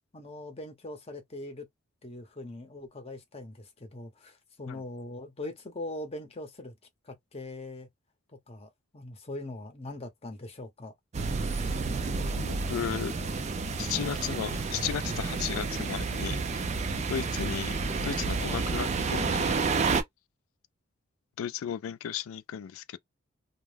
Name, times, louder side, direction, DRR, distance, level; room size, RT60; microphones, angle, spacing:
voice 1, 0.1-1.7 2.0-6.8 7.0-7.9 8.5-10.9 18.5-18.7, left 2 dB, 30° left, 0.7 m, -41 dB
sound 1, 11.1-20.0, right 4 dB, 30° right, 0.4 m, -30 dB
voice 2, 12.4-13.1 13.8-16.7 17.1-17.8 18.0-19.6 21.4-23.0, left 9 dB, 75° left, 0.3 m, -35 dB
2.3 x 2.1 x 3.2 m
head